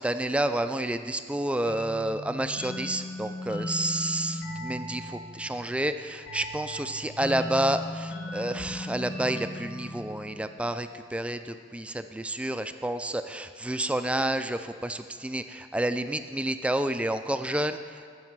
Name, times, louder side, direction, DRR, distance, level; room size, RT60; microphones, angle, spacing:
voice 1, 0.0-18.1, right 1 dB, 5° right, 9 dB, 0.3 m, -30 dB
sound 1, 1.6-11.0, left 1 dB, 85° left, 2.1 m, -38 dB
15.0 x 5.5 x 6.0 m, 2.2 s
head